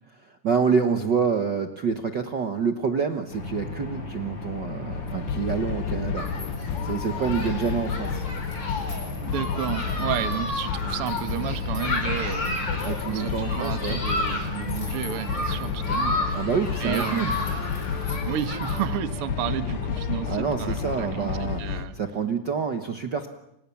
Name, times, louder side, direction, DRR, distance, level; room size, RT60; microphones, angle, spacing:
voice 1, 0.2-6.3 6.8-8.3 12.8-14.0 16.3-17.4 20.3-21.6 21.9-23.3, right 6 dB, 80° right, 6 dB, 0.9 m, -27 dB
sound 1, 3.3-21.4, left 2 dB, 55° left, 8.3 m, -36 dB
sound 2, 4.9-21.9, left 7 dB, 80° left, 3.2 m, -32 dB
Human group actions, 6.2-18.9, left 2 dB, 30° left, 5.2 m, -32 dB
voice 2, 9.2-12.6 13.1-16.5 16.8-17.5 18.2-22.0, right 10 dB, 55° right, 10 dB, 1.8 m, -32 dB
29.5 x 26.5 x 7.1 m, 0.84 s
omnidirectional pair, 4.2 m